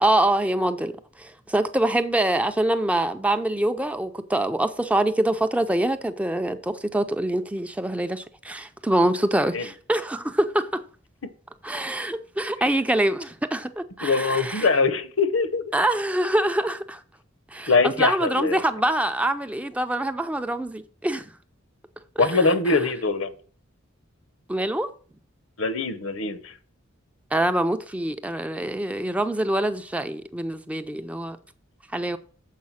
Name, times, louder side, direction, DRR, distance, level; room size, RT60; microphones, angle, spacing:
voice 1, 0.0-10.8 11.6-14.7 15.7-17.0 17.5-21.3 22.2-22.8 24.5-24.9 27.3-31.4 31.9-32.2, right 1 dB, 5° right, 0.4 m, -25 dB
voice 2, 14.0-15.7 17.7-18.6 22.2-23.3 25.6-26.5, left 4 dB, 75° left, 0.9 m, -22 dB
7.5 x 4.8 x 7.2 m
head